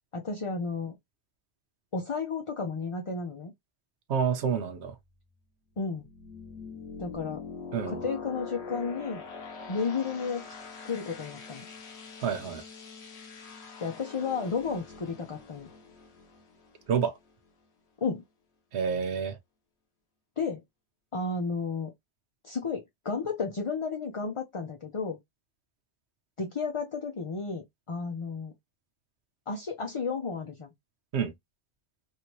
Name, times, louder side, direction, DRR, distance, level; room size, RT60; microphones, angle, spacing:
voice 1, 0.1-1.0 1.9-3.5 5.8-6.0 7.0-7.4 7.9-9.2 9.7-10.5 10.8-11.7 13.8-15.7 18.0-18.2 20.4-20.6 21.1-21.9 22.4-25.2 26.4-28.5 29.5-30.7, left 4 dB, 35° left, 0.6 m, -32 dB
voice 2, 4.1-4.9 7.7-8.0 12.2-12.6 16.9-17.1 18.7-19.4 31.1-31.3, right 7 dB, 75° right, 1.0 m, -28 dB
sound 1, 4.9-17.5, left 5 dB, 75° left, 1.2 m, -44 dB
3.2 x 2.6 x 2.9 m
omnidirectional pair, 1.1 m